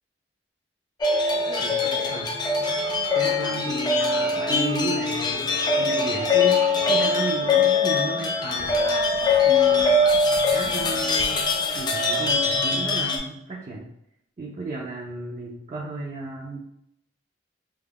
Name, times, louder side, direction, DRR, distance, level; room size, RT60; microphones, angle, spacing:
sound 1, 1.0-13.2, left 3 dB, 25° left, 0.3 m, -22 dB
voice 1, 1.6-2.3 3.1-8.8 9.4-10.0 10.5-13.9 14.4-16.6, right 2 dB, 40° right, -4 dB, 0.4 m, -34 dB
2.3 x 2.1 x 3.4 m, 0.78 s
head